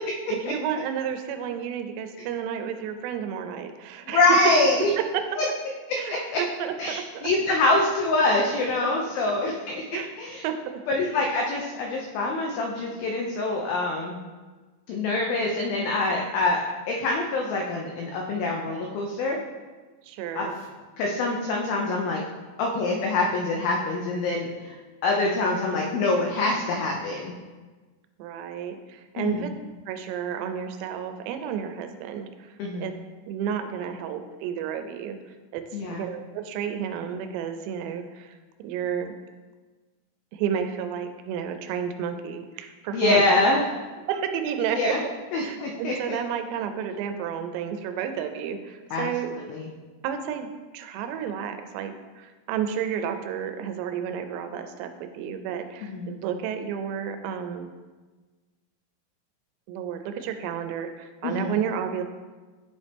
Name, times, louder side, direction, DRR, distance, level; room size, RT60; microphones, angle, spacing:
voice 1, 0.0-4.4 5.0-5.3 6.0-7.3 9.0-9.1 9.9-10.2 10.4-10.8 20.0-20.5 28.2-29.5 29.9-32.6 32.8-32.9 33.3-35.2 35.5-39.1 40.3-43.2 44.1-45.0 45.4-49.3 50.0-57.7 59.7-62.0, right 8 dB, 85° right, 7 dB, 2.8 m, -31 dB
voice 2, 4.1-4.9 5.4-5.5 5.9-6.4 6.8-10.4 10.9-14.2 14.9-19.4 20.4-20.5 21.0-22.2 22.6-24.8 25.0-27.3 29.2-29.5 32.6-32.9 35.7-36.1 42.9-43.6 44.7-45.0 45.3-46.2 48.9-49.1 49.3-49.7 55.8-56.1 61.2-61.5, left 2 dB, 90° left, 0 dB, 2.0 m, -25 dB
10.5 x 4.1 x 3.4 m, 1.3 s
omnidirectional pair, 5.0 m